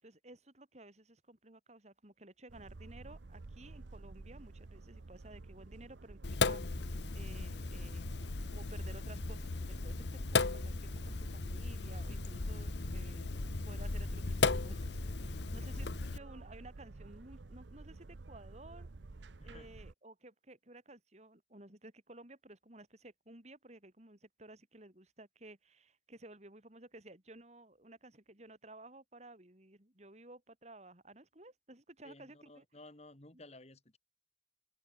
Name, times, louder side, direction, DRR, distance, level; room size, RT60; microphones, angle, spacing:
voice 1, 0.0-8.0 8.5-18.9 19.4-32.6 33.3-33.4, right 2 dB, 40° right, 3.7 m, -55 dB
sound 1, 2.5-19.9, right 3 dB, 85° right, 0.8 m, -51 dB
Sink (filling or washing), 6.2-16.2, left 3 dB, 75° left, 1.0 m, -36 dB
voice 2, 19.4-19.7 32.0-34.0, left 2 dB, 35° left, 2.5 m, -55 dB
open air
head